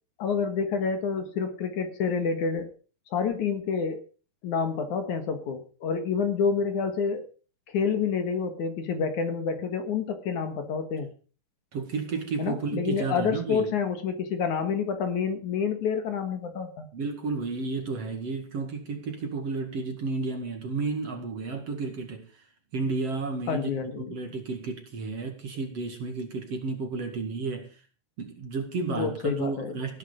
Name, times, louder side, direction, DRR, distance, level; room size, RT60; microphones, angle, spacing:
voice 1, 0.2-2.7 3.1-4.0 4.4-7.3 7.7-11.1 12.4-16.9 23.5-24.1 28.9-29.8, left 6 dB, 60° left, 2.8 m, -28 dB
voice 2, 11.7-13.7 16.9-22.3 22.7-27.8 28.2-30.0, right 4 dB, 45° right, 2.9 m, -32 dB
18.0 x 9.9 x 5.1 m
omnidirectional pair, 4.1 m